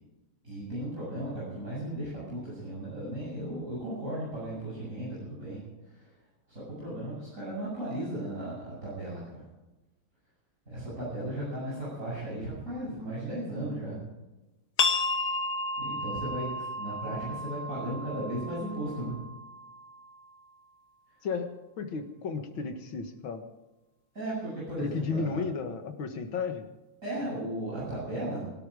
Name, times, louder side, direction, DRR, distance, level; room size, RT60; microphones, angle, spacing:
voice 1, 0.4-5.6 5.8-6.1 6.5-9.4 10.7-14.0 15.8-19.2 24.1-25.4 27.0-28.4, right 1 dB, 40° right, -8 dB, 7.9 m, -36 dB
sound 1, 14.8-20.2, left 3 dB, 55° left, 1.9 m, -33 dB
voice 2, 21.2-23.4 24.8-26.7, left 4 dB, 75° left, 7 dB, 2.4 m, -33 dB
22.5 x 13.0 x 4.9 m, 1.0 s
omnidirectional pair, 2.2 m